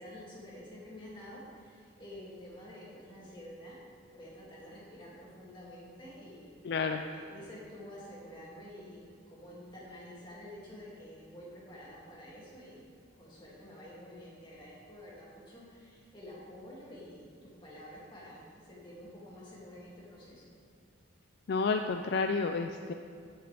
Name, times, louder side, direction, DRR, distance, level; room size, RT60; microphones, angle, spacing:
voice 1, 0.0-3.8 4.1-12.8 13.1-20.5, equal, 25° left, -7 dB, 2.5 m, -49 dB
voice 2, 6.6-7.0 21.5-22.9, left 4 dB, 55° left, 6 dB, 0.4 m, -30 dB
14.5 x 7.7 x 3.5 m, 2.4 s
head